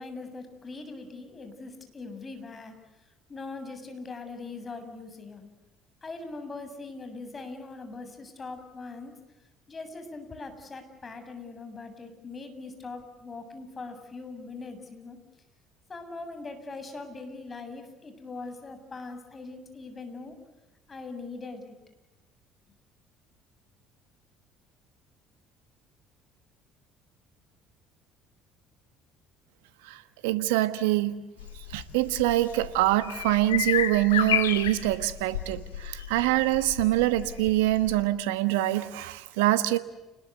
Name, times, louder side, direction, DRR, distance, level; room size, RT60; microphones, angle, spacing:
voice 1, 0.0-2.7 3.3-5.5 6.0-9.1 9.7-15.2 15.9-20.4 20.9-21.8, left 3 dB, 30° left, 7.7 m, -41 dB
voice 2, 29.9-31.2 31.7-39.8, right 16 dB, 75° right, 1.3 m, -25 dB
sound 1, 31.4-38.0, left 10 dB, 85° left, 1.9 m, -32 dB
30.0 x 21.0 x 8.2 m
hypercardioid pair, 60°, 0 cm